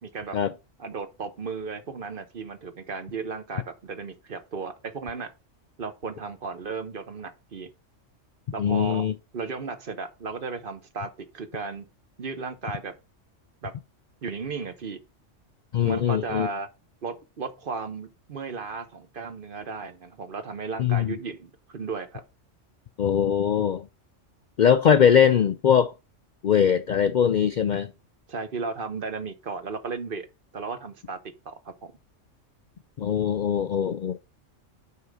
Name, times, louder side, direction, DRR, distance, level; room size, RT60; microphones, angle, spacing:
voice 1, 0.0-5.3 5.8-7.7 8.5-9.1 9.3-11.9 12.2-13.0 13.6-13.7 14.2-15.0 15.8-16.7 17.0-22.2 28.3-30.3 30.5-31.2 31.4-31.9, right 4 dB, 50° right, 1.0 m, -35 dB
voice 2, 8.6-9.1 15.7-16.5 20.8-21.2 23.0-23.9 24.6-25.9 26.4-27.9 33.0-34.2, left 8 dB, 65° left, 0.4 m, -21 dB
5.7 x 4.9 x 6.3 m
omnidirectional pair, 1.3 m